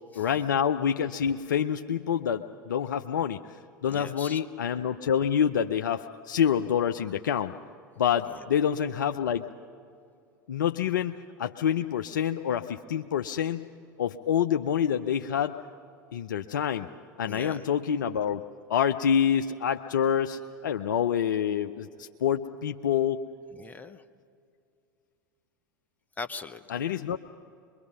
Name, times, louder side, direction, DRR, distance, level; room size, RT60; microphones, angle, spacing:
voice 1, 0.2-7.5 8.0-9.5 10.5-13.7 14.0-15.6 16.1-16.9 17.2-18.4 18.7-23.2 26.7-27.2, left 8 dB, 70° left, 7 dB, 0.6 m, -27 dB
voice 2, 3.9-4.4 8.3-8.5 17.2-17.7 23.5-24.0 26.2-26.6, left 4 dB, 15° left, 9 dB, 1.0 m, -40 dB
24.5 x 22.5 x 5.5 m, 2.4 s
figure-of-eight pair, 85°, 11 cm